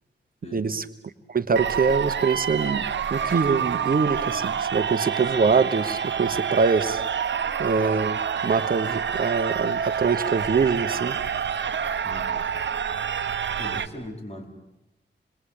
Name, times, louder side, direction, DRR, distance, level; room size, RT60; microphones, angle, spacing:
voice 1, 0.5-0.8 1.3-2.8 3.1-7.0 7.6-11.2, right 5 dB, 50° right, 9 dB, 1.1 m, -24 dB
sound 1, 1.6-13.9, right 7 dB, 70° right, 1.1 m, -27 dB
voice 2, 12.0-12.5 13.6-14.5, left 1 dB, 35° left, 2 dB, 5.2 m, -39 dB
27.5 x 21.5 x 8.6 m, 0.90 s
wide cardioid pair, 95°, 19 cm